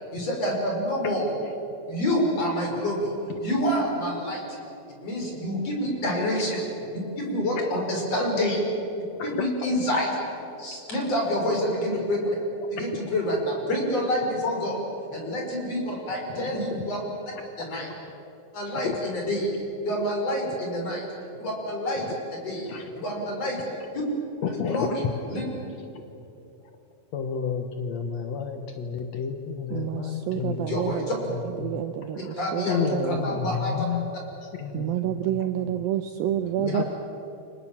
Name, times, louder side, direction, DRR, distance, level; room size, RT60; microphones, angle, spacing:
voice 1, 0.1-1.3 1.9-3.1 3.4-4.4 5.0-6.6 6.9-8.6 9.2-10.1 10.6-12.2 12.7-14.8 15.1-17.0 17.6-17.9 18.5-19.5 19.8-21.0 21.4-22.1 22.4-22.7 23.0-23.6 23.9-24.0 24.7-24.9 25.3-25.4 30.7-31.2 32.4-33.9, equal, 35° left, 0 dB, 6.4 m, -27 dB
voice 2, 9.1-9.7 12.8-13.1 16.3-16.7 17.9-18.0 18.6-19.0 20.1-20.2 22.0-22.1 22.6-22.9 24.4-24.9 27.1-31.8 32.1-32.4 32.7-34.0 34.4-35.4 35.6-35.8 36.6-36.8, left 7 dB, 80° left, 5 dB, 1.5 m, -32 dB
voice 3, 29.7-31.1 31.6-33.4 34.7-36.8, right 11 dB, 80° right, 9 dB, 2.1 m, -29 dB
29.5 x 25.5 x 7.4 m, 2.9 s
omnidirectional pair, 5.1 m